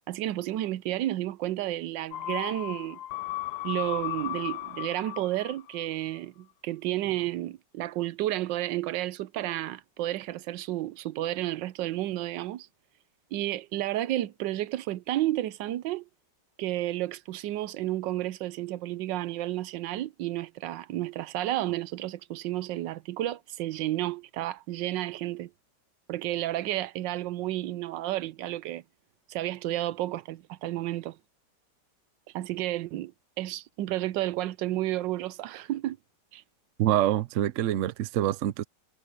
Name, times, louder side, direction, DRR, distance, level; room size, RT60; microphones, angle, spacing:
voice 1, 0.1-3.0 3.6-12.7 13.3-16.1 16.6-25.5 26.1-28.8 29.3-31.2 32.3-33.1 33.4-36.0 36.3-36.4, right 14 dB, 90° right, 1.3 m, -31 dB
sound 1, 2.1-5.9 6.2-6.3, left 15 dB, 70° left, 1.1 m, -36 dB
voice 2, 36.8-38.6, right 12 dB, 65° right, 0.7 m, -26 dB
omnidirectional pair, 1.9 m